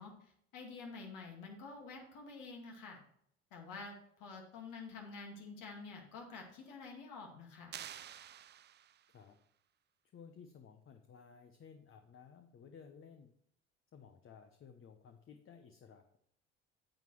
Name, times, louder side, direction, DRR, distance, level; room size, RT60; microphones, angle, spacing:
voice 1, 0.0-3.0 3.5-7.8, left 4 dB, 65° left, 1 dB, 2.1 m, -49 dB
sound 1, 7.7-9.2, right 10 dB, 30° right, 0.5 m, -49 dB
voice 2, 10.1-13.3 13.9-16.2, left 6 dB, 40° left, 6 dB, 0.9 m, -56 dB
9.0 x 7.6 x 3.2 m, 0.70 s
hypercardioid pair, 65°, 34 cm